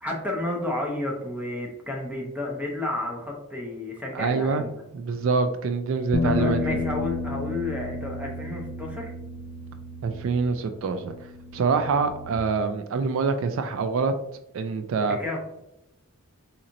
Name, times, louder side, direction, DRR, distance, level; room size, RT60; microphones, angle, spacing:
voice 1, 0.0-4.8 6.2-9.1 15.1-15.4, left 2 dB, 5° right, -1 dB, 0.7 m, -31 dB
voice 2, 4.1-4.6 4.9-6.8 10.0-11.1 11.5-14.1 14.5-15.2, right 4 dB, 70° right, 9 dB, 0.3 m, -25 dB
sound 1, 6.1-12.4, left 3 dB, 45° left, 0.3 m, -32 dB
3.9 x 2.9 x 2.5 m, 0.85 s
head